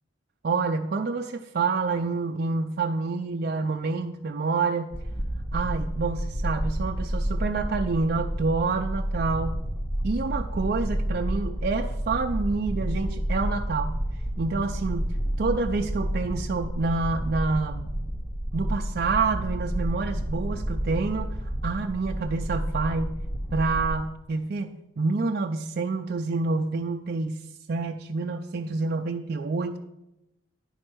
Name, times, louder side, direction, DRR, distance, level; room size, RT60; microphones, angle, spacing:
voice 1, 0.4-4.9 5.5-9.6 10.0-14.0 14.4-15.1 15.4-17.9 18.5-21.3 21.6-23.2 23.5-24.7 25.0-27.4 27.7-29.8, right 4 dB, 50° right, 2 dB, 0.4 m, -27 dB
sound 1, 4.9-23.9, equal, 30° left, 1.0 m, -30 dB
10.5 x 4.4 x 6.1 m, 0.90 s
head